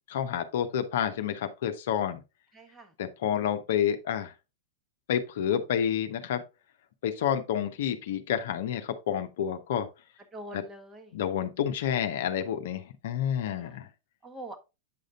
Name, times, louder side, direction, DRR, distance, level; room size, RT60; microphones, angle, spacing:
voice 1, 0.1-2.2 3.0-4.3 5.1-6.4 7.0-9.9 10.5-10.6 11.1-13.9, left 9 dB, 55° left, 0.7 m, -29 dB
voice 2, 2.5-2.9 10.3-11.2 13.5-13.8 14.2-14.6, right 1 dB, 15° right, 1.2 m, -44 dB
8.5 x 6.4 x 2.4 m
figure-of-eight pair, 90°, 0 cm